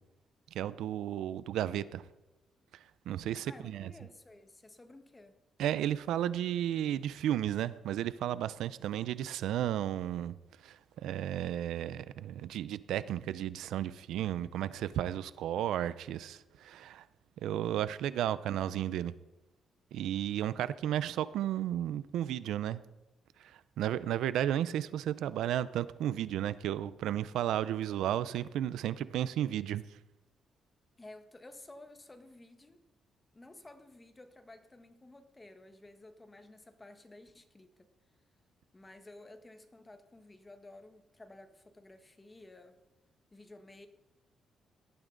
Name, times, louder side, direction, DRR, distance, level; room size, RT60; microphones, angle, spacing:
voice 1, 0.5-2.0 3.1-3.9 5.6-10.4 10.6-17.1 17.4-19.1 19.9-22.8 23.4-29.8, right 11 dB, 85° right, 16 dB, 0.6 m, -33 dB
voice 2, 3.4-5.4 18.5-19.0 31.0-32.8 33.3-37.9 38.7-42.8 43.3-43.9, left 2 dB, 20° left, 8 dB, 1.5 m, -54 dB
18.0 x 12.5 x 4.0 m, 1.0 s
cardioid pair, 110°, 0 cm